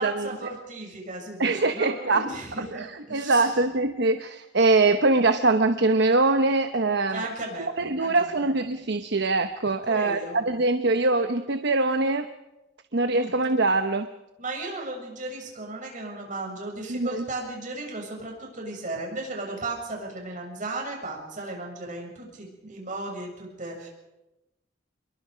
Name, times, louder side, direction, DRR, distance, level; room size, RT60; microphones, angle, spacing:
voice 1, 0.0-3.5 7.1-7.7 8.0-8.5 8.8-8.9 9.9-10.4 13.1-13.3 14.4-23.9, right 2 dB, 45° right, 0 dB, 7.2 m, -35 dB
voice 2, 1.4-2.3 2.7-7.3 7.8-12.3 12.9-14.1 16.9-17.2, right 3 dB, 60° right, 8 dB, 1.0 m, -23 dB
28.5 x 22.0 x 5.2 m, 0.98 s
head